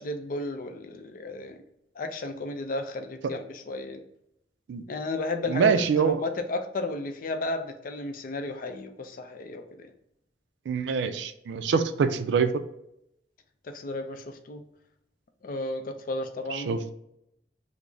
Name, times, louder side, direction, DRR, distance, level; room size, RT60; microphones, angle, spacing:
voice 1, 0.0-1.6 2.0-4.0 4.9-5.7 6.0-9.9 13.7-14.6 15.4-16.8, left 2 dB, 50° left, 0.4 m, -33 dB
voice 2, 5.5-6.2 10.7-12.5 16.5-16.8, right 6 dB, 80° right, 0.3 m, -25 dB
3.4 x 2.0 x 3.8 m
head